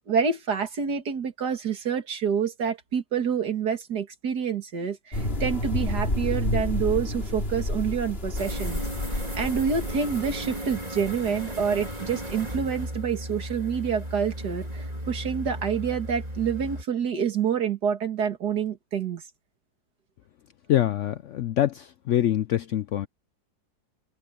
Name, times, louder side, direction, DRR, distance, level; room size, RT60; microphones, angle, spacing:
voice 1, 0.1-8.8 9.3-19.2, right 6 dB, 80° right, 2.6 m, -27 dB
sound 1, 5.1-10.6, left 1 dB, 35° left, 3.9 m, -29 dB
sound 2, 8.3-16.8, equal, 25° right, 3.8 m, -35 dB
voice 2, 20.7-23.1, left 12 dB, 70° left, 0.7 m, -25 dB
omnidirectional pair, 1.7 m